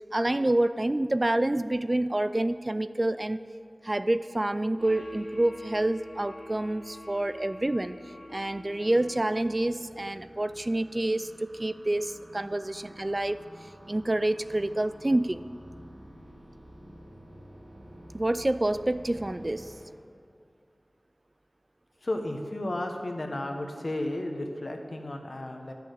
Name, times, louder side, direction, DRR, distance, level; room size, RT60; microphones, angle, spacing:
voice 1, 0.1-3.4 3.8-8.0 8.3-13.4 13.9-15.4 18.1-19.8, right 1 dB, 35° right, 13 dB, 0.3 m, -28 dB
sound 1, 4.8-9.6, left 1 dB, 10° left, 1.2 m, -47 dB
sound 2, 8.4-19.9, equal, 85° right, 3.0 m, -50 dB
voice 2, 22.0-25.7, left 1 dB, 60° left, 3 dB, 1.3 m, -33 dB
11.0 x 7.0 x 8.0 m, 2.3 s
wide cardioid pair, 60°, 0 cm